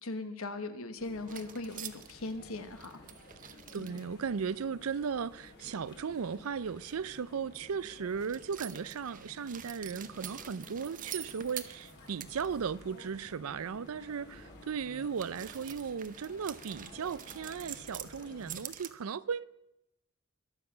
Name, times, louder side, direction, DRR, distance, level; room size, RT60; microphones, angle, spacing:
voice 1, 0.0-3.0 3.7-4.0, left 2 dB, 70° left, 1.3 m, -39 dB
sound 1, 1.0-18.6, left 1 dB, 50° left, 2.6 m, -54 dB
sound 2, 1.3-4.0 8.2-12.5 12.8-12.9 15.2-18.9, right 10 dB, 35° right, 0.7 m, -46 dB
voice 2, 3.7-19.4, right 6 dB, 75° right, 0.5 m, -36 dB
22.0 x 7.5 x 5.8 m
head